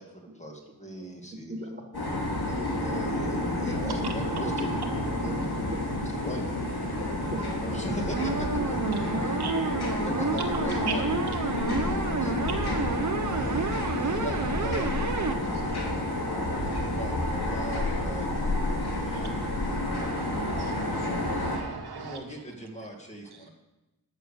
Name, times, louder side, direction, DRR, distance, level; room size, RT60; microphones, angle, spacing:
voice 1, 0.0-1.5 2.5-4.8 5.2-5.3 6.2-6.5 7.6-9.4 9.9-11.2 11.6-12.5 13.2-14.9 16.5-18.3 19.0-19.3 21.9-23.5, right 1 dB, 20° left, 0 dB, 2.2 m, -40 dB
voice 2, 1.5-1.8 3.8-4.1 5.3-6.3 7.0-8.0 8.9-9.3 14.0-14.3 15.4-15.9, right 1 dB, 30° right, 1 dB, 1.1 m, -39 dB
sound 1, 1.9-21.6, left 1 dB, 80° left, 2.6 m, -29 dB
sound 2, 8.1-15.3, right 4 dB, 50° right, 0.8 m, -31 dB
voice 3, 15.4-16.7 19.1-19.3 19.9-22.2, right 6 dB, 85° right, 4 dB, 1.5 m, -40 dB
13.0 x 6.7 x 6.8 m, 1.0 s
wide cardioid pair, 125°, 38 cm